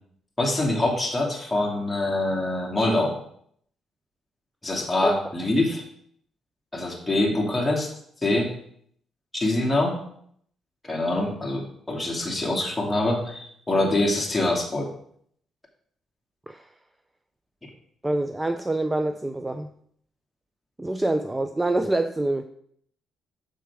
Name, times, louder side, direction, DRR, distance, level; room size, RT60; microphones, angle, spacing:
voice 1, 0.4-3.2 4.6-5.8 6.7-7.9 8.2-8.6 9.3-10.0 10.8-14.9, left 2 dB, 10° left, -1 dB, 2.5 m, -24 dB
voice 2, 18.0-19.7 20.8-22.4, right 2 dB, 15° right, 8 dB, 0.5 m, -26 dB
7.0 x 6.1 x 4.8 m, 0.65 s
cardioid pair, 90°, 0 cm